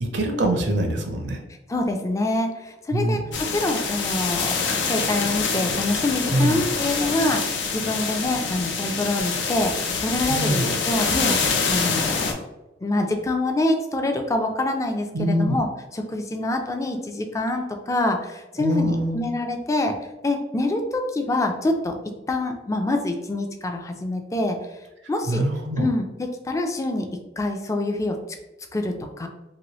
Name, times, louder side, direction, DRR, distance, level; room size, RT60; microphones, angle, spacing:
voice 1, 0.0-1.4 2.9-3.2 6.3-6.6 10.3-10.7 15.1-15.6 18.6-19.3 25.3-25.9, right 1 dB, 70° right, 3 dB, 0.6 m, -24 dB
voice 2, 1.7-3.2 3.5-12.4 12.8-15.7 15.9-20.0 20.2-21.9 22.3-24.6 25.1-25.4 25.8-27.1 27.4-28.2 28.7-29.3, left 2 dB, 20° left, 4 dB, 0.4 m, -25 dB
sound 1, 3.3-12.3, left 5 dB, 85° left, 0.5 m, -25 dB
3.0 x 2.6 x 2.9 m, 1.0 s
head